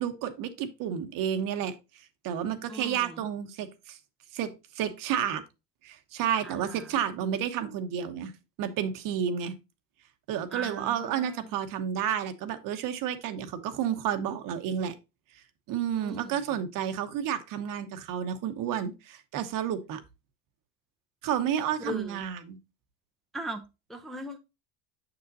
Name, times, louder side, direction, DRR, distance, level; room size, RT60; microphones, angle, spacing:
voice 1, 0.0-1.7 2.2-4.0 4.3-5.4 5.8-8.3 8.6-9.5 10.3-14.9 15.7-20.0 21.2-22.6, right 9 dB, 55° right, 1.1 m, -31 dB
voice 2, 2.7-3.2 6.4-6.9 10.5-11.5 15.9-16.5 21.8-22.2 23.3-23.6 23.9-24.4, equal, ahead, 0.6 m, -39 dB
6.8 x 6.5 x 2.7 m
supercardioid pair, 115°, 38 cm